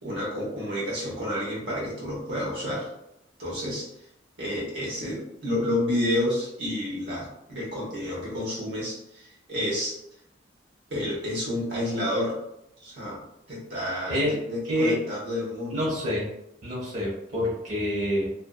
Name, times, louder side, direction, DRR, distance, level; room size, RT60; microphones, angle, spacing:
voice 1, 0.0-2.9 3.4-3.9 4.4-10.0 10.9-12.3 12.8-13.2 13.5-16.0, left 1 dB, 70° right, -5 dB, 0.9 m, -30 dB
voice 2, 14.6-15.0 15.7-16.3 16.6-18.3, equal, 40° right, -6 dB, 0.9 m, -27 dB
2.6 x 2.3 x 2.3 m, 0.81 s
head